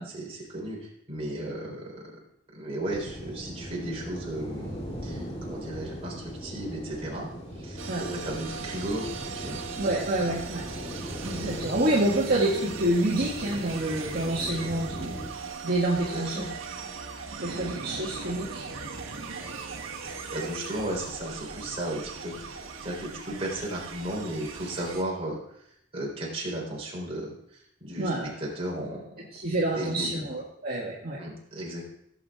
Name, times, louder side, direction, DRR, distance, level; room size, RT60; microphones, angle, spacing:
voice 1, 0.1-2.1 2.5-7.3 7.6-9.1 9.3-9.6 16.1-16.5 20.0-25.4 25.9-27.3 27.8-29.0 29.8-30.2 31.2-31.8, right 1 dB, 30° right, -3 dB, 3.8 m, -35 dB
sound 1, 2.9-15.3, equal, 30° left, 2.6 m, -39 dB
sound 2, 7.8-25.0, right 5 dB, 90° right, 1.4 m, -39 dB
voice 2, 9.8-10.6 11.2-15.1 15.6-16.5 17.3-18.6 28.0-28.3 29.3-31.2, right 1 dB, 50° right, -5 dB, 1.9 m, -27 dB
17.0 x 7.7 x 3.6 m, 0.73 s
head